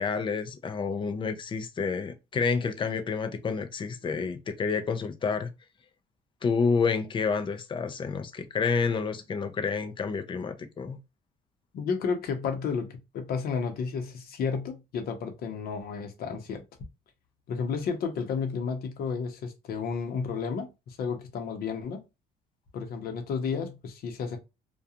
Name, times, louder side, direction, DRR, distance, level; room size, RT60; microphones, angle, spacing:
voice 1, 0.0-5.5 6.4-11.0, left 5 dB, 30° left, 0.5 m, -29 dB
voice 2, 11.7-16.6 17.5-22.0 22.7-24.4, left 5 dB, 65° left, 0.8 m, -32 dB
2.4 x 2.3 x 2.7 m
cardioid pair, 110°, 17 cm